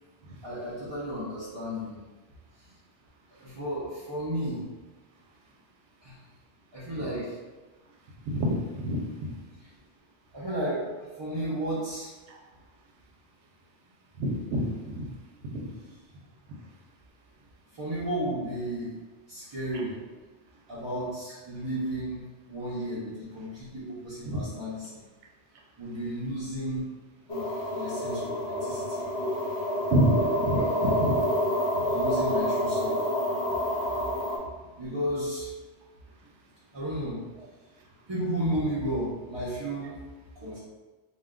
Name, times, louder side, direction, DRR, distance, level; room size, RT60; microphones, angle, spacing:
voice 1, 0.4-2.0 3.4-4.6 6.0-6.2 6.7-7.4 10.3-10.8 11.2-12.1 17.7-18.9 19.3-19.9 20.7-25.0 25.8-26.9 27.3-29.0 31.9-33.1 34.8-35.5 36.7-37.2 38.1-40.0 40.4-40.6, right 1 dB, 35° right, -10 dB, 0.4 m, -33 dB
voice 2, 8.3-9.3 12.3-12.4 14.2-14.6 14.9-15.1 15.5-15.7 24.2-24.4 29.9-31.1, equal, 75° right, 0 dB, 0.9 m, -27 dB
sound 1, 27.3-34.4, equal, 70° left, 0.8 m, -28 dB
2.3 x 2.2 x 3.5 m, 1.3 s
omnidirectional pair, 1.2 m